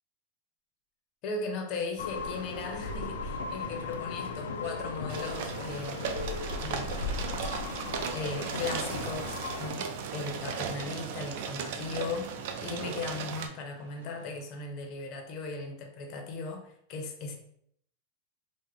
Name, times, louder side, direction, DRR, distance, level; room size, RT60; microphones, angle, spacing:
voice 1, 1.2-6.0 6.6-6.9 8.1-9.9 10.1-12.3 12.6-17.4, left 3 dB, 35° left, 3 dB, 0.6 m, -37 dB
sound 1, 2.0-9.7, left 4 dB, 90° left, 0.3 m, -37 dB
sound 2, 2.1-14.4, right 2 dB, 85° right, 0.7 m, -53 dB
sound 3, 5.1-13.5, right 6 dB, 55° right, 0.4 m, -36 dB
3.3 x 2.0 x 3.4 m, 0.67 s
supercardioid pair, 165°, 0 cm